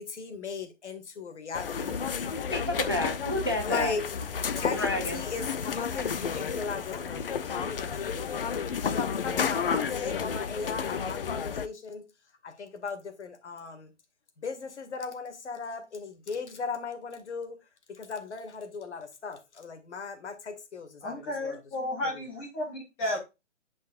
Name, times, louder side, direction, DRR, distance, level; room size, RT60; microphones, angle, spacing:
voice 1, 0.0-2.2 3.6-4.1 4.5-7.2 7.5-8.5 8.8-12.1 12.4-13.9 14.4-17.6 17.9-21.6, left 5 dB, 65° left, 2.2 m, -37 dB
sound 1, 1.5-11.7, left 6 dB, 50° left, 0.8 m, -31 dB
voice 2, 2.4-3.9 4.7-5.2, left 1 dB, 20° right, 0.4 m, -30 dB
voice 3, 21.0-23.2, left 1 dB, 5° left, 0.7 m, -33 dB
11.0 x 5.4 x 2.5 m
hypercardioid pair, 165°, 37 cm